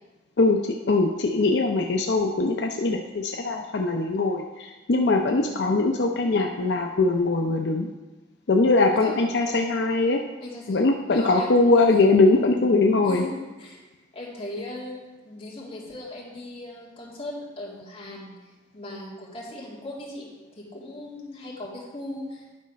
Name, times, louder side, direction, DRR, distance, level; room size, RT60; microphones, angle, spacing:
voice 1, 0.9-7.9 8.5-10.2 10.7-13.2, left 3 dB, 75° left, 2 dB, 0.6 m, -21 dB
voice 2, 5.2-5.5 8.9-9.3 10.4-12.1 13.1-13.3 13.6-13.8 14.1-15.0 15.2-20.3 20.6-22.6, left 1 dB, 35° left, -4 dB, 2.1 m, -38 dB
10.5 x 4.1 x 5.2 m, 1.2 s
head